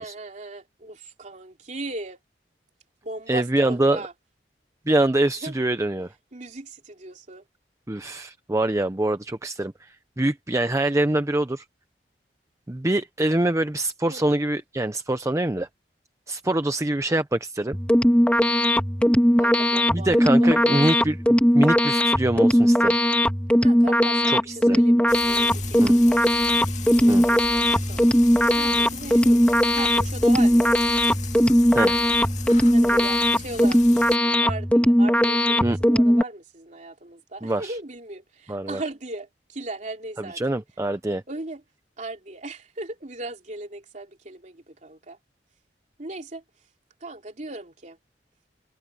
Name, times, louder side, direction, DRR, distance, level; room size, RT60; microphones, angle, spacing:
voice 1, 0.0-2.2 3.0-4.1 5.4-5.5 6.3-7.4 14.1-14.4 19.4-20.1 20.4-20.9 23.6-26.3 26.8-28.0 28.5-29.4 29.7-30.7 32.7-40.4 41.3-41.6 42.0-45.2 46.0-46.4 47.0-48.0, right 2 dB, 45° right, 3.0 m, -37 dB
voice 2, 3.3-4.0 4.9-6.1 7.9-11.6 12.7-15.7 16.3-17.8 19.9-23.0 24.3-24.8 25.8-26.0 27.1-27.2 31.7-32.0 35.6-35.8 37.4-37.7 38.5-38.8 40.2-41.2, right 1 dB, 15° right, 0.7 m, -24 dB
sound 1, 17.7-36.2, equal, 5° left, 1.9 m, -19 dB
Frying (food), 25.1-34.2, left 5 dB, 45° left, 2.0 m, -37 dB
head